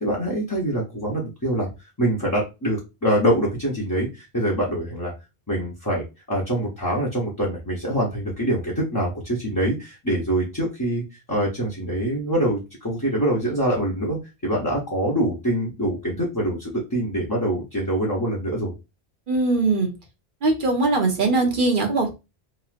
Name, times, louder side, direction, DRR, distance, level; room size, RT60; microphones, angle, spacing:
voice 1, 0.0-1.7 2.0-5.1 5.5-14.2 14.4-18.7, right 1 dB, 20° left, -4 dB, 0.7 m, -24 dB
voice 2, 19.3-19.9 20.4-22.1, right 3 dB, 55° right, 3 dB, 0.9 m, -21 dB
3.0 x 2.6 x 2.4 m, 0.26 s
omnidirectional pair, 1.0 m